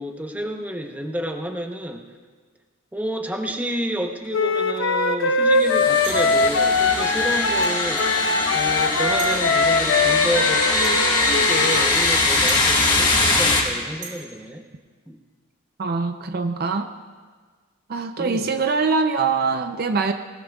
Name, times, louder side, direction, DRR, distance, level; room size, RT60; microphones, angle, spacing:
voice 1, 0.0-2.0 2.9-8.0 8.5-14.6 15.1-15.2 18.2-18.5, equal, 5° right, 3 dB, 0.8 m, -30 dB
Wind instrument woodwind instrument, 4.3-11.9, left 3 dB, 60° left, 0.9 m, -21 dB
sound 1, 5.6-13.6, left 2 dB, 20° left, 1.6 m, -22 dB
sound 2, 6.0-6.4 7.6-7.8 9.2-9.4 10.8-11.1 12.5-12.7 14.0-14.2, right 5 dB, 65° right, 4.7 m, -36 dB
voice 2, 15.8-16.9 17.9-20.1, right 4 dB, 45° right, 7 dB, 0.5 m, -23 dB
19.0 x 18.5 x 2.3 m, 1.5 s
head